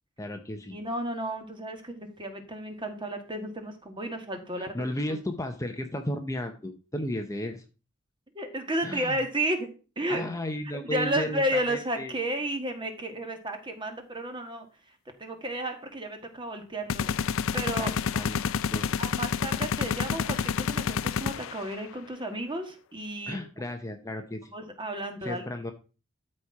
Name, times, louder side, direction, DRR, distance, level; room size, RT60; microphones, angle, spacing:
voice 1, 0.2-0.8 4.6-7.6 8.8-9.2 10.1-12.2 17.7-18.9 23.3-24.5 25.2-25.7, left 1 dB, 15° left, 5 dB, 0.8 m, -34 dB
voice 2, 0.7-4.8 8.3-9.7 10.0-10.3 10.8-14.7 15.2-17.1 17.5-17.9 19.0-23.4 24.5-25.4, right 1 dB, 25° right, 5 dB, 1.7 m, -32 dB
sound 1, 16.9-21.7, left 6 dB, 65° left, 0.4 m, -29 dB
13.0 x 4.4 x 4.8 m, 0.34 s
head